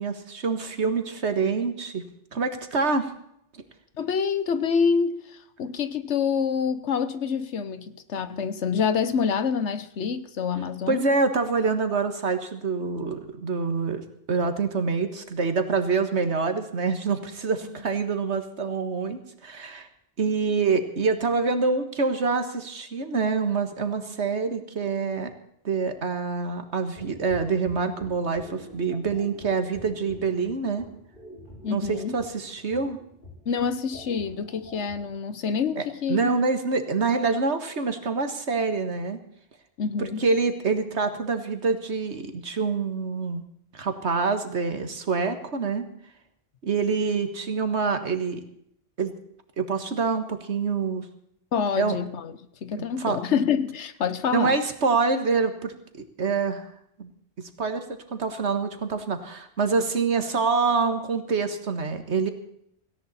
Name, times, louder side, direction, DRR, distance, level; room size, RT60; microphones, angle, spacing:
voice 1, 0.0-2.0 2.3-3.1 3.5-3.6 10.9-14.0 14.3-19.9 20.2-25.3 25.6-30.9 31.7-33.0 35.8-35.9 36.1-39.2 40.0-43.4 43.7-45.9 46.6-48.4 49.0-49.1 49.6-51.1 51.8-52.0 53.0-53.2 54.3-55.7 56.2-56.7 57.0-57.1 57.4-57.9 58.1-62.3, right 4 dB, 75° right, 1.9 m, -26 dB
voice 2, 4.0-11.1 31.6-32.1 33.4-36.4 39.8-40.2 51.5-52.3 52.6-54.6, left 6 dB, 85° left, 1.3 m, -27 dB
sound 1, 26.9-35.1, left 1 dB, 50° left, 6.5 m, -46 dB
17.5 x 16.5 x 4.3 m
omnidirectional pair, 1.1 m